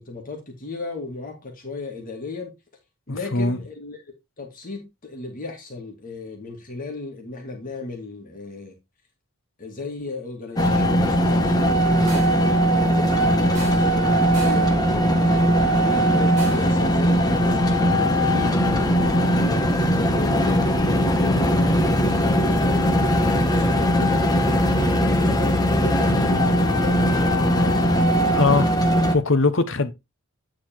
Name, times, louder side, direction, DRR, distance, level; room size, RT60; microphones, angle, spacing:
voice 1, 0.0-2.5 3.1-8.8 9.6-15.3 15.8-17.8 18.1-19.6 20.0-21.8 22.1-24.1 24.7-27.9, left 3 dB, 35° left, 2.2 m, -35 dB
voice 2, 3.1-3.6 28.4-28.7 29.1-29.9, left 3 dB, 55° left, 1.0 m, -20 dB
sound 1, 10.6-29.1, equal, 15° left, 1.1 m, -19 dB
sound 2, 12.1-12.5 13.5-14.1 14.3-14.7 16.4-16.8, right 1 dB, 30° right, 4.6 m, -37 dB
9.3 x 4.3 x 4.4 m
head